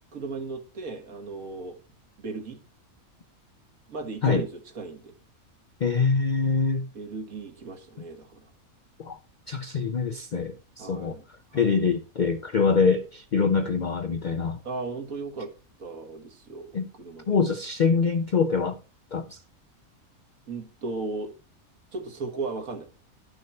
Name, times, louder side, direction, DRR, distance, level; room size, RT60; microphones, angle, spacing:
voice 1, 0.1-1.8 2.2-2.6 3.9-5.1 6.9-8.5 10.8-11.2 11.5-11.8 14.6-15.5 15.8-17.4 20.5-21.3 21.9-22.9, right 3 dB, 75° right, 2.0 m, -36 dB
voice 2, 5.8-6.9 9.0-9.2 9.5-11.2 11.5-14.6 16.7-16.9 17.3-18.8 19.1-19.4, left 5 dB, 60° left, 0.4 m, -24 dB
11.5 x 6.3 x 4.3 m
omnidirectional pair, 1.5 m